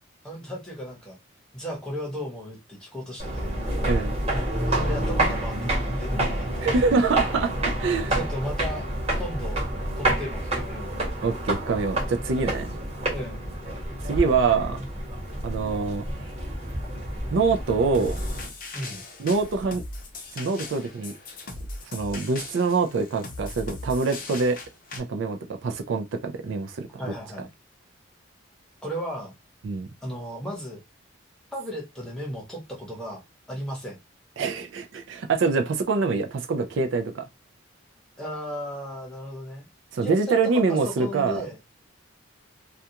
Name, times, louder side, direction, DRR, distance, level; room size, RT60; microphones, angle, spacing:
voice 1, 0.2-1.2 1.5-3.6 4.7-6.7 8.1-8.8 9.1-9.6 9.9-10.9 13.1-13.4 18.7-19.0 27.0-27.5 28.8-29.3 30.0-30.8 31.5-33.2 33.5-34.0 38.2-39.7 40.0-41.6, equal, 5° left, 0.8 m, -35 dB
sound 1, 3.2-18.5, right 1 dB, 30° right, 1.1 m, -28 dB
voice 2, 3.9-4.2 6.6-8.2 11.2-12.8 14.0-14.8 15.4-16.1 17.3-18.2 19.2-19.8 20.4-21.1 21.9-24.6 24.9-26.9 29.6-29.9 34.4-37.2 39.9-41.4, right 4 dB, 65° right, 0.4 m, -25 dB
sound 2, 17.9-25.0, left 2 dB, 40° left, 0.5 m, -39 dB
2.4 x 2.2 x 2.8 m
head